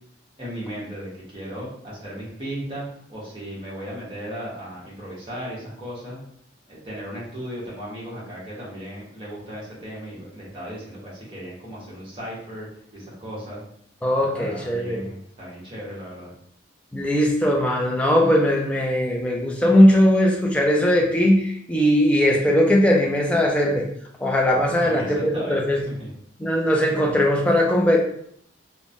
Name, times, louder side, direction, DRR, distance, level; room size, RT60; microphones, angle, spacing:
voice 1, 0.4-6.2 6.7-13.6 14.3-16.3 24.7-25.6 25.9-26.1, equal, 25° right, -7 dB, 1.1 m, -36 dB
voice 2, 14.0-15.0 16.9-23.9 24.2-25.8 26.4-28.0, equal, 5° left, -1 dB, 0.4 m, -19 dB
3.1 x 2.1 x 2.5 m, 0.66 s
head